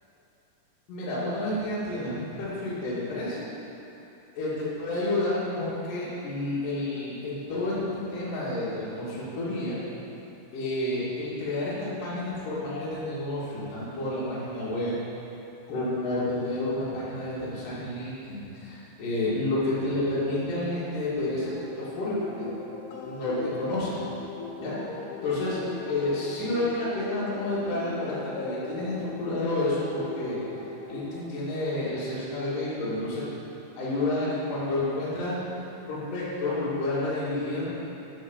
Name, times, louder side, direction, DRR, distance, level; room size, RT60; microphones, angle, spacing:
voice 1, 0.9-3.5 4.4-4.5 4.8-7.8 8.1-9.8 10.5-14.9 15.7-21.5 21.8-22.5 23.0-23.9 24.6-24.8 25.2-25.6 25.9-30.4 30.9-33.2 33.8-35.4 35.9-37.7, left 2 dB, 50° left, -10 dB, 3.6 m, -30 dB
sound 1, 21.4-31.2, left 3 dB, 70° left, 3.2 m, -39 dB
13.0 x 5.9 x 7.3 m, 2.9 s
omnidirectional pair, 5.3 m